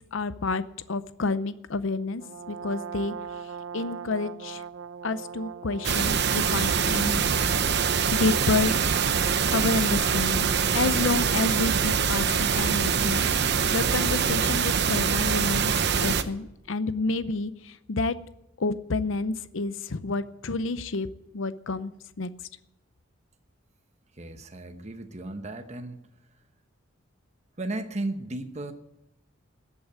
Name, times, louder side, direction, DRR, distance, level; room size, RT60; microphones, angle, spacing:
voice 1, 0.1-0.6 0.9-2.2 2.5-3.1 3.7-4.6 5.0-7.3 8.1-8.8 9.5-10.5 10.7-13.3 13.7-15.7 16.0-18.2 18.6-21.1 21.3-21.9 22.2-22.3, left 3 dB, 70° left, 14 dB, 0.7 m, -29 dB
Brass instrument, 2.2-9.9, right 7 dB, 90° right, 0.6 m, -40 dB
sound 1, 5.8-16.2, right 6 dB, 55° right, 0.8 m, -24 dB
voice 2, 24.1-26.0 27.6-28.7, right 2 dB, 35° right, 7 dB, 1.0 m, -34 dB
13.5 x 8.5 x 9.1 m, 0.87 s
head